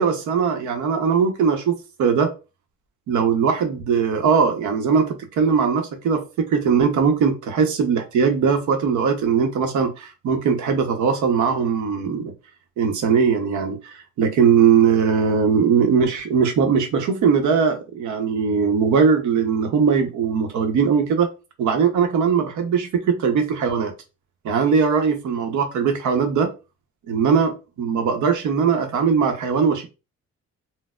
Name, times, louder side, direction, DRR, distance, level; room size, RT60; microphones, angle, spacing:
voice 1, 0.0-2.3 3.1-12.3 12.8-21.3 21.6-23.9 24.4-26.5 27.1-29.9, right 6 dB, 75° right, 0.7 m, -20 dB
4.0 x 2.0 x 2.2 m
cardioid pair, 90°, 30 cm